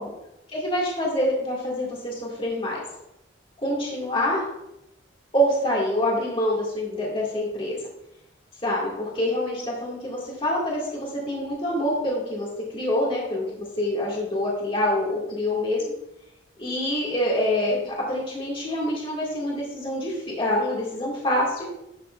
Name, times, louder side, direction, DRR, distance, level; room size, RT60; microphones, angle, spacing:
voice 1, 0.5-2.8 3.6-4.4 5.3-7.8 8.6-12.5 12.7-15.8 16.6-21.7, left 1 dB, 25° left, -4 dB, 2.0 m, -26 dB
12.0 x 6.7 x 2.4 m, 0.85 s
head